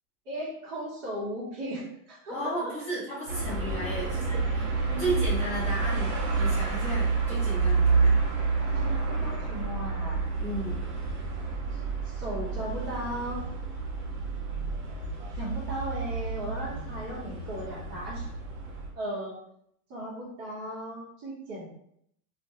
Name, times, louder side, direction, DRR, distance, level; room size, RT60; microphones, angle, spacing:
voice 1, 0.3-2.7 4.9-5.5 8.8-10.2 12.0-13.4 15.4-18.3 18.9-19.4 19.9-21.7, right 1 dB, 45° right, -7 dB, 1.0 m, -36 dB
voice 2, 2.3-4.7 5.0-8.2 10.4-10.8, right 1 dB, 5° left, -14 dB, 0.3 m, -34 dB
sound 1, 3.3-18.9, right 4 dB, 70° right, 1.1 m, -29 dB
2.3 x 2.1 x 3.4 m, 0.71 s
supercardioid pair, 160°, 45 cm